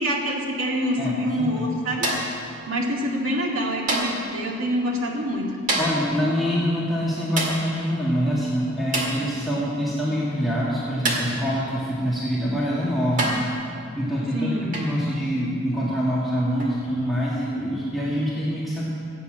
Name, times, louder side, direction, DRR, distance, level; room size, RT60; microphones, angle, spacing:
voice 1, 0.0-2.3 2.7-5.6 14.3-14.7, equal, 85° right, -1 dB, 2.2 m, -26 dB
voice 2, 1.0-1.6 5.8-13.4 13.9-18.9, equal, ahead, -7 dB, 1.7 m, -25 dB
sound 1, 2.0-2.4 3.9-4.3 5.7-6.1 7.4-7.7 8.9-9.2 11.0-11.4 12.5-12.6 13.2-13.5 14.7-15.0 16.6-16.8, right 2 dB, 40° right, 1.8 m, -26 dB
16.0 x 8.4 x 7.4 m, 2.4 s
head